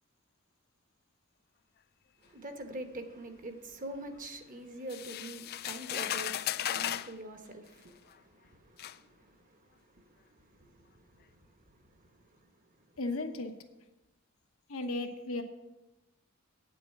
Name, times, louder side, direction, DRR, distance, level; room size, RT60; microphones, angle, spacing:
voice 1, 2.2-12.8, right 1 dB, 40° right, 1.2 m, -46 dB
sound 1, 4.9-7.1 8.1-8.2 8.8-9.0, left 11 dB, 50° left, 0.3 m, -35 dB
voice 2, 13.0-13.6 14.7-15.4, left 2 dB, 85° left, 1.2 m, -35 dB
9.1 x 7.6 x 6.6 m
head